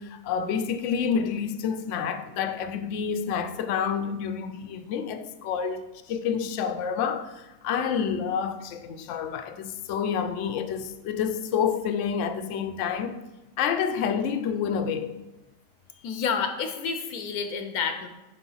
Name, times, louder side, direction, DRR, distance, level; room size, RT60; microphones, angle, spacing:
voice 1, 0.0-13.2 13.6-15.1, left 7 dB, 65° left, 0.9 m, -28 dB
voice 2, 16.0-18.1, left 6 dB, 80° left, 1.2 m, -29 dB
9.4 x 3.6 x 5.5 m
omnidirectional pair, 1.5 m